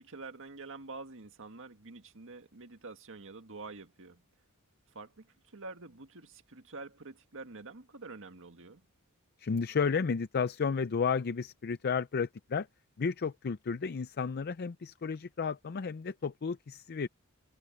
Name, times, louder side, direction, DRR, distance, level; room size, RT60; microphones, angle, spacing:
voice 1, 0.0-4.2 4.9-8.8, right 3 dB, 60° right, 2.0 m, -47 dB
voice 2, 9.4-12.7 13.0-17.1, left 5 dB, 45° left, 0.5 m, -32 dB
head